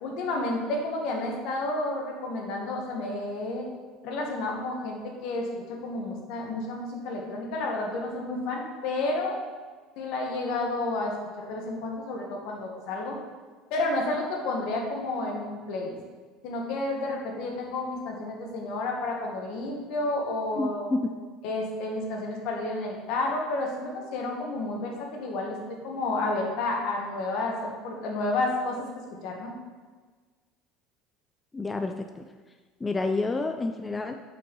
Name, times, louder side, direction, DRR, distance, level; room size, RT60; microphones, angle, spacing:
voice 1, 0.0-3.7 4.0-9.4 9.9-13.2 13.7-16.0 16.4-20.9 21.4-29.5, left 2 dB, 70° left, 0 dB, 1.7 m, -31 dB
voice 2, 20.6-21.1 31.5-32.3 32.8-34.2, left 3 dB, 15° left, 6 dB, 0.5 m, -29 dB
6.1 x 5.7 x 5.5 m, 1.4 s
supercardioid pair, 105°, 0 cm